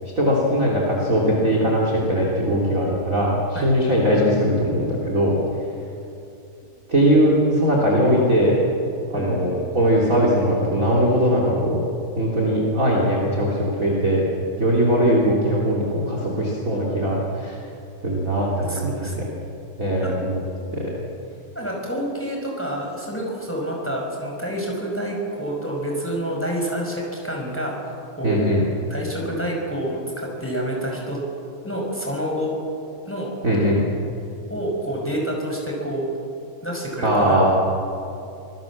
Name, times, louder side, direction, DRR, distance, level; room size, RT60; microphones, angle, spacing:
voice 1, 0.0-5.3 6.9-8.6 9.1-11.8 12.2-14.2 14.6-17.6 18.0-19.2 19.8-20.4 20.7-20.9 28.2-28.6 33.4-33.8 37.0-37.5, equal, 25° right, -3 dB, 3.4 m, -20 dB
voice 2, 9.1-9.6 18.5-19.3 20.0-20.1 21.5-27.8 28.1-28.4 28.9-31.2 31.6-32.5 33.1-33.3 34.5-36.1 36.6-37.5, right 1 dB, 5° left, -1 dB, 5.6 m, -28 dB
26.5 x 20.0 x 7.4 m, 2.8 s
omnidirectional pair, 3.8 m